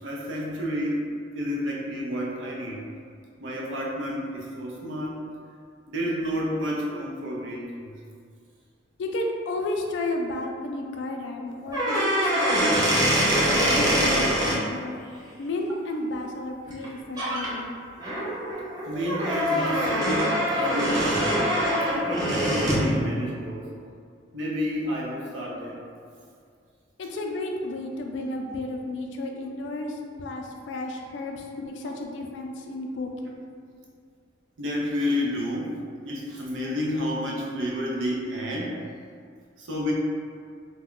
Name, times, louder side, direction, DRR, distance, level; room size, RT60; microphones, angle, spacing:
voice 1, 0.0-1.1 1.3-2.9 3.4-5.2 5.9-7.9 18.9-21.4 21.9-23.7 24.3-25.8 34.6-35.7 36.0-38.7 39.6-39.9, equal, 90° right, -3 dB, 0.5 m, -30 dB
voice 2, 9.0-13.1 13.4-15.0 15.4-17.8 27.0-33.4, left 1 dB, 70° left, 2 dB, 0.3 m, -32 dB
sound 1, 11.6-14.6 16.7-16.9 17.2-17.5 18.0-22.9, equal, 20° right, 0.5 m, -24 dB
2.2 x 2.1 x 3.6 m, 2.2 s
head